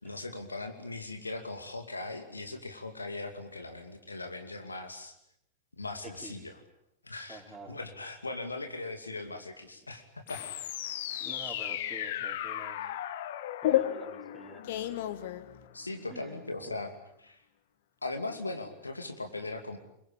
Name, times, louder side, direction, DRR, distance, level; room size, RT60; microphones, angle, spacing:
voice 1, 0.0-5.2 5.8-6.6 7.0-7.4 7.7-10.4 15.7-17.4 18.0-19.8, left 2 dB, 80° left, 6 dB, 2.6 m, -39 dB
voice 2, 6.0-6.5 7.3-7.8 11.2-12.9 13.6-14.6 16.1-16.7, right 3 dB, 5° right, 1 dB, 4.9 m, -48 dB
sound 1, 10.3-15.9, left 12 dB, 55° left, 1.4 m, -33 dB
25.0 x 22.5 x 8.8 m, 0.77 s
figure-of-eight pair, 90°, 0 cm